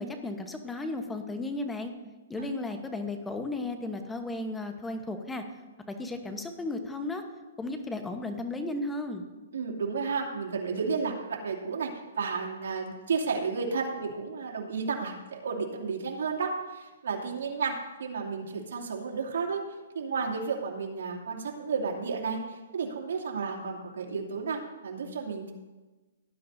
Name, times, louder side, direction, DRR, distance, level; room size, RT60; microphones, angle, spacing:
voice 1, 0.0-1.9 2.3-5.4 5.9-7.2 7.6-9.3, left 2 dB, 10° left, 6 dB, 1.1 m, -34 dB
voice 2, 9.5-19.6 19.9-25.5, right 5 dB, 70° right, -2 dB, 2.7 m, -32 dB
18.0 x 10.5 x 2.8 m, 1.2 s
hypercardioid pair, 150°, 0 cm